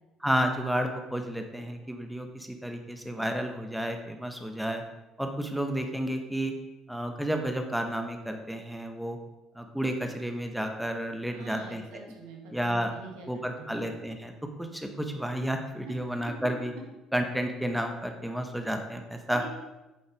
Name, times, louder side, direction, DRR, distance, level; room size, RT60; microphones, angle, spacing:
voice 1, 0.2-4.8 5.2-6.5 6.9-9.2 9.5-12.1 12.5-12.9 13.3-14.3 14.6-16.7 17.1-19.4, equal, 5° right, 5 dB, 1.4 m, -31 dB
voice 2, 11.3-13.8 15.8-16.0 19.3-19.5, right 5 dB, 75° right, 1 dB, 2.0 m, -46 dB
8.8 x 7.1 x 4.9 m, 1.0 s
hypercardioid pair, 55°, 0 cm